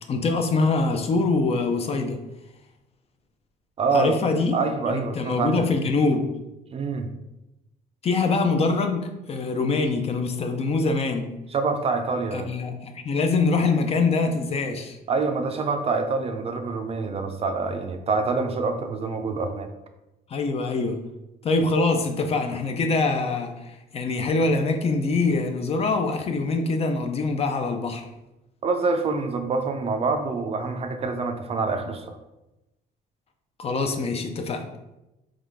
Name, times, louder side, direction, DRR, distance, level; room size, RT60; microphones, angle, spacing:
voice 1, 0.1-2.2 3.9-4.6 4.9-6.3 8.0-11.3 12.3-15.0 20.3-21.0 21.4-28.0 33.6-34.7, left 3 dB, 35° left, 5 dB, 0.5 m, -24 dB
voice 2, 3.8-4.1 4.5-5.7 6.7-7.1 11.5-12.5 15.1-19.7 28.6-32.2, right 4 dB, 35° right, 6 dB, 0.5 m, -26 dB
3.7 x 3.1 x 3.4 m, 0.96 s
cardioid pair, 110°, 17 cm